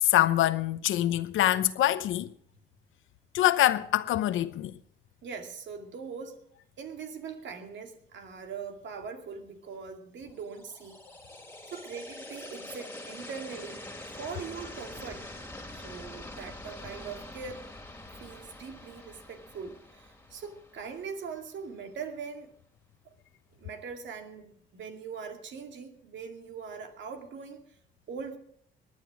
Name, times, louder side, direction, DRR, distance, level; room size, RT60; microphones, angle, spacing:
voice 1, 0.0-2.3 3.3-4.7, left 13 dB, 80° left, 0.9 m, -25 dB
voice 2, 5.2-6.4 6.8-11.0 11.7-13.8 14.2-15.3 15.7-17.6 18.2-22.5 23.5-27.6 28.1-28.4, right 5 dB, 70° right, 2.3 m, -41 dB
sound 1, 10.4-21.4, left 1 dB, 10° left, 2.6 m, -45 dB
19.0 x 10.0 x 5.0 m
cardioid pair, 90°, 20 cm